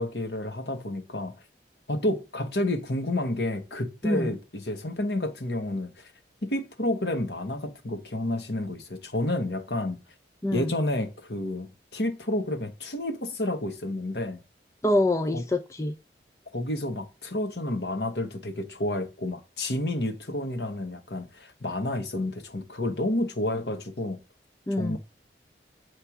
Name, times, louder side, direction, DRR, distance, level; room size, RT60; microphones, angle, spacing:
voice 1, 0.0-1.3 1.9-6.1 6.4-10.0 10.5-14.4 15.3-15.4 16.5-24.2 24.8-25.0, left 1 dB, 70° left, 1.4 m, -30 dB
voice 2, 14.8-15.9 24.7-25.0, left 1 dB, 15° left, 0.4 m, -25 dB
7.7 x 3.3 x 5.9 m
head